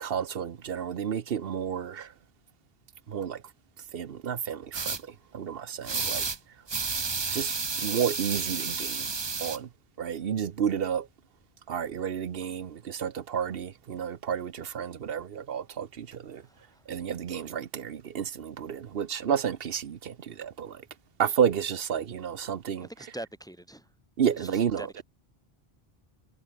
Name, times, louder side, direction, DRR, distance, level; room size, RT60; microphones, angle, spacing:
voice 1, 0.0-2.1 3.1-3.4 3.9-6.3 7.3-9.1 9.4-9.7 10.0-11.1 11.7-16.5 16.9-20.9 21.2-22.9 24.2-25.0, right 8 dB, 70° right, 1.0 m, -31 dB
sound 1, 4.7-5.0 5.8-6.4 6.7-9.6, right 5 dB, 30° right, 0.7 m, -31 dB
voice 2, 16.4-16.8 22.8-23.9 24.4-24.9, right 1 dB, 5° left, 2.4 m, -43 dB
omnidirectional pair, 1.0 m